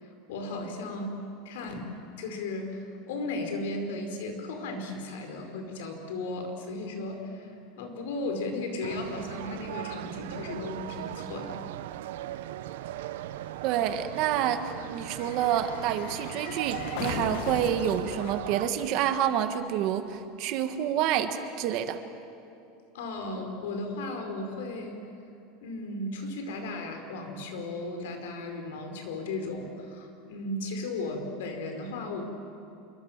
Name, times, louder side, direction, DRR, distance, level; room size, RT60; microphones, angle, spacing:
voice 1, 0.0-1.2 1.4-1.9 2.2-11.5 22.9-25.0 25.6-32.2, left 2 dB, 85° left, 4 dB, 4.9 m, -35 dB
sound 1, 8.8-18.7, right 14 dB, 80° right, 0.7 m, -39 dB
sound 2, 9.0-9.1 9.3-19.7 20.0-20.1, left 10 dB, 50° left, 1.1 m, -42 dB
voice 2, 13.6-14.6 14.9-22.0, right 10 dB, 40° right, 9 dB, 1.5 m, -28 dB
27.0 x 23.5 x 7.4 m, 2.7 s
supercardioid pair, 180°, 0 cm